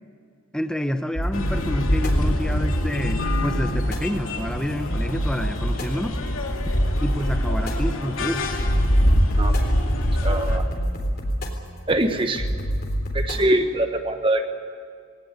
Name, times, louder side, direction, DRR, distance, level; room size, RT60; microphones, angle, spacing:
voice 1, 0.5-6.2 7.0-8.4, equal, 5° left, 8 dB, 1.0 m, -28 dB
sound 1, 1.2-13.5, equal, 45° left, 3.7 m, -29 dB
sound 2, 1.3-10.6, equal, 80° left, 2.7 m, -24 dB
voice 2, 10.2-10.6 11.9-12.5 13.1-14.5, right 1 dB, 25° right, 6 dB, 1.2 m, -23 dB
21.5 x 18.0 x 9.6 m, 2.2 s
head